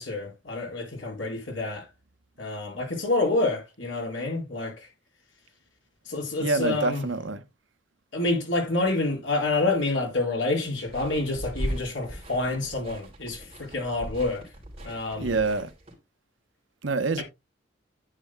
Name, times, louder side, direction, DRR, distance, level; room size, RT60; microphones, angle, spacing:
voice 1, 0.0-1.9 2.4-4.9 6.1-7.1 8.1-14.4 14.8-15.3 17.2-17.3, left 2 dB, 70° left, 4.3 m, -28 dB
voice 2, 6.4-7.4 15.2-15.7 16.8-17.2, right 3 dB, 75° right, 0.9 m, -26 dB
sound 1, 10.9-15.9, equal, 30° right, 2.9 m, -38 dB
9.8 x 8.8 x 2.2 m
head